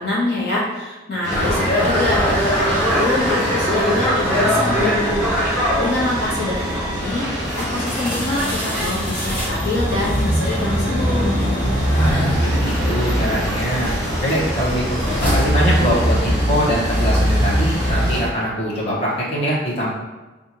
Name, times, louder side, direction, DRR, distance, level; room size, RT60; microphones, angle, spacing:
voice 1, 0.0-11.3, left 2 dB, 55° left, -7 dB, 1.0 m, -25 dB
sound 1, 1.2-18.2, right 1 dB, 15° right, 0.9 m, -32 dB
sound 2, 1.3-18.3, equal, 10° left, 0.9 m, -21 dB
voice 2, 11.9-19.9, equal, 30° left, -7 dB, 1.1 m, -23 dB
5.5 x 2.5 x 2.8 m, 1.2 s
head